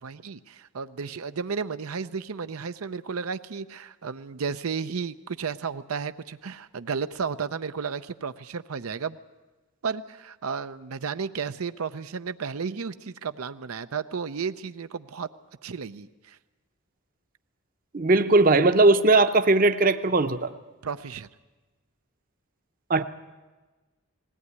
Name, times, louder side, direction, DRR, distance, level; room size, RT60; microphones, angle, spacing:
voice 1, 0.0-9.2 9.8-15.3 15.6-16.4 20.8-21.3, right 5 dB, 90° right, 0.6 m, -33 dB
voice 2, 17.9-20.5 22.9-23.0, right 2 dB, 40° right, 0.7 m, -19 dB
19.5 x 17.5 x 9.6 m
head